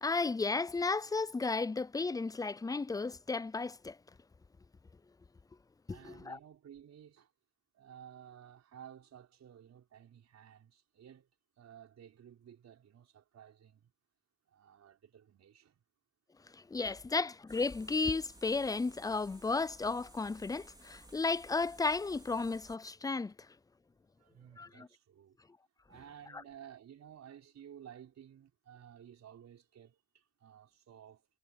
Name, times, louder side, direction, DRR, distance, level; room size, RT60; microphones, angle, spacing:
voice 1, 0.0-4.0 5.9-6.4 16.5-23.3 24.6-24.9, left 4 dB, 10° left, 0.4 m, -34 dB
voice 2, 5.9-7.3 7.7-11.3 11.6-13.9 14.5-15.8 24.2-25.4 25.9-31.3, right 9 dB, 60° right, 5.5 m, -55 dB
sound 1, 17.5-22.8, right 2 dB, 15° right, 4.1 m, -57 dB
cardioid pair, 90°, 30 cm